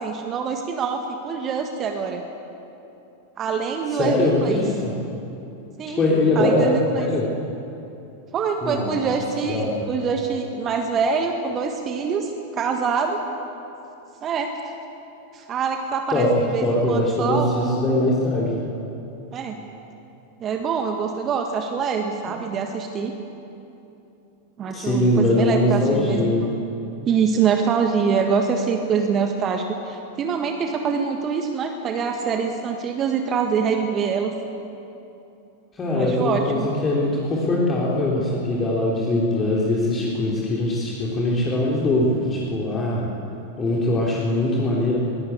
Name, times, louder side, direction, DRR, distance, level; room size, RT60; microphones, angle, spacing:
voice 1, 0.0-2.2 3.4-4.6 5.8-6.0 6.4-7.1 8.3-13.2 14.2-14.5 15.3-17.7 19.3-19.6 20.4-23.2 24.6-26.3 27.1-34.3 36.0-36.7, right 6 dB, 30° right, 4 dB, 1.7 m, -25 dB
voice 2, 3.9-4.9 6.0-7.3 8.6-10.0 16.1-16.3 16.6-18.6 24.7-26.4 35.7-43.1 43.6-45.0, left 1 dB, 20° left, -4 dB, 3.6 m, -22 dB
22.5 x 17.5 x 8.4 m, 2.9 s
figure-of-eight pair, 90°, 0 cm